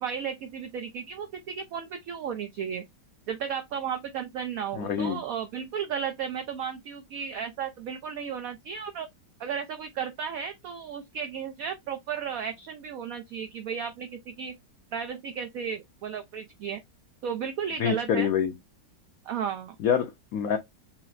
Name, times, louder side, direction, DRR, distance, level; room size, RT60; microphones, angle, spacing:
voice 1, 0.0-2.8 3.3-9.1 9.4-14.6 14.9-16.8 17.2-18.3 19.3-19.8, right 7 dB, 75° right, 0.8 m, -34 dB
voice 2, 4.8-5.2 17.8-18.5 19.8-20.6, left 8 dB, 70° left, 0.9 m, -26 dB
5.6 x 2.0 x 2.4 m
omnidirectional pair, 2.0 m